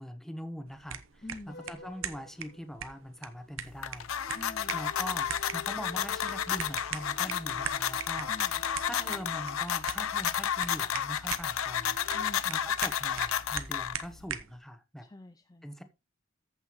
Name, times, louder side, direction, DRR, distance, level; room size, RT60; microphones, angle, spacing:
voice 1, 0.0-1.2 1.7-4.1 4.7-12.0 12.5-15.1 15.6-15.8, equal, ahead, 0.9 m, -42 dB
sound 1, 0.7-14.6, right 8 dB, 80° right, 0.9 m, -42 dB
voice 2, 1.2-1.7 4.3-4.8 8.3-8.5 12.1-12.7 15.0-15.7, left 2 dB, 20° left, 0.4 m, -46 dB
sound 2, 1.5-3.1 4.2-10.2 11.7-12.3, left 3 dB, 50° left, 1.0 m, -49 dB
sound 3, 3.6-14.2, left 9 dB, 90° left, 0.6 m, -32 dB
14.5 x 5.6 x 3.0 m
head